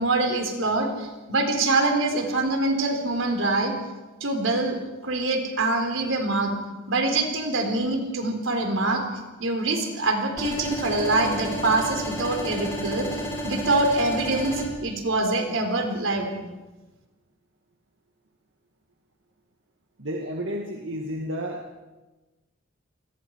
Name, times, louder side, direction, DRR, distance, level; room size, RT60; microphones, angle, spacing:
voice 1, 0.0-3.8 4.2-4.8 5.0-6.5 6.9-9.1 9.4-13.1 13.4-16.3, right 2 dB, 85° right, 4 dB, 3.9 m, -24 dB
sound 1, 10.4-14.6, equal, 15° left, 7.7 m, -32 dB
voice 2, 20.0-21.6, equal, 65° right, 0 dB, 2.1 m, -31 dB
28.5 x 21.0 x 4.8 m, 1.1 s
head